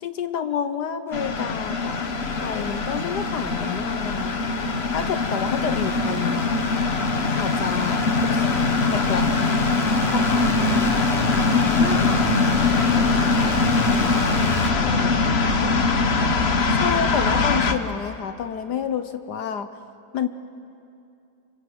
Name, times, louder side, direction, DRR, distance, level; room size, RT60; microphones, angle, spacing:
voice 1, 0.0-2.0 2.3-4.3 4.9-6.8 7.3-8.5 8.9-9.6 10.1-10.5 16.7-19.7 20.1-20.3, left 7 dB, 70° left, 10 dB, 1.4 m, -29 dB
sound 1, 1.1-17.7, left 3 dB, 40° left, 1.3 m, -22 dB
sound 2, 1.1-14.7, equal, ahead, 1.8 m, -36 dB
voice 2, 11.8-14.1 14.7-16.1, right 3 dB, 80° right, 0 dB, 2.5 m, -37 dB
28.0 x 25.5 x 7.9 m, 2.7 s
omnidirectional pair, 1.9 m